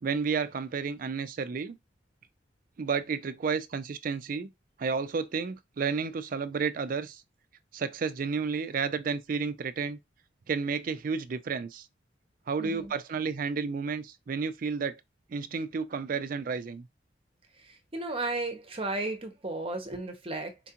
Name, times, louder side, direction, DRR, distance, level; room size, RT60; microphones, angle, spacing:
voice 1, 0.0-1.8 2.8-4.5 4.8-7.2 7.7-10.0 10.5-11.9 12.5-15.0 15.3-16.9, right 5 dB, 50° right, 0.4 m, -31 dB
voice 2, 12.6-12.9 17.5-20.6, right 2 dB, 30° right, 0.8 m, -34 dB
4.4 x 2.4 x 2.8 m
head